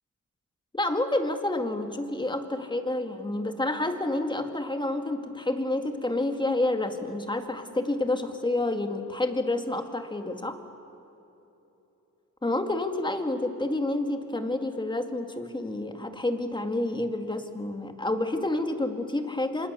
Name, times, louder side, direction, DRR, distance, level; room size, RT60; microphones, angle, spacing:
voice 1, 0.7-10.6 12.4-19.7, left 2 dB, 15° left, 6 dB, 2.0 m, -29 dB
27.5 x 26.5 x 6.9 m, 3.0 s
wide cardioid pair, 135°, 31 cm